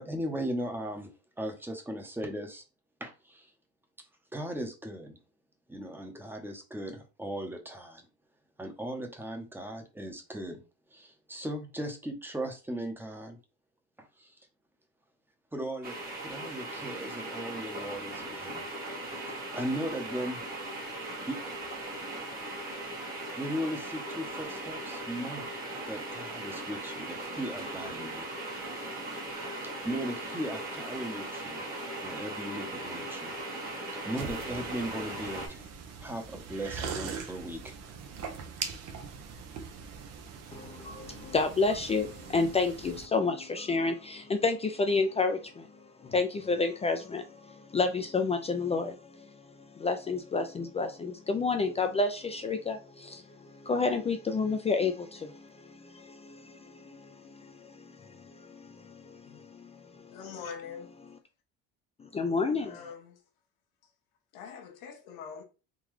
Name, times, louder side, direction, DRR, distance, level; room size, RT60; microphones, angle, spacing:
voice 1, 0.0-2.6 3.0-3.5 4.3-5.2 5.7-8.0 8.6-10.6 10.9-13.4 14.0-14.5 15.5-16.0 16.2-18.7 19.1-20.4 21.2-21.4 23.4-25.5 25.9-28.3 29.8-31.6 32.0-33.3 34.1-35.7 36.0-37.7, right 1 dB, 5° right, 0.8 m, -37 dB
sound 1, 15.8-35.5, right 1 dB, 30° right, 1.5 m, -38 dB
sound 2, 34.2-43.1, right 6 dB, 55° right, 0.7 m, -42 dB
voice 2, 40.5-45.7 46.0-49.3 49.7-60.2 62.1-62.8, left 4 dB, 20° left, 0.3 m, -30 dB
voice 3, 60.1-61.1 62.6-63.2 64.3-65.4, left 6 dB, 90° left, 1.0 m, -44 dB
3.7 x 2.3 x 3.1 m
cardioid pair, 110°, 31 cm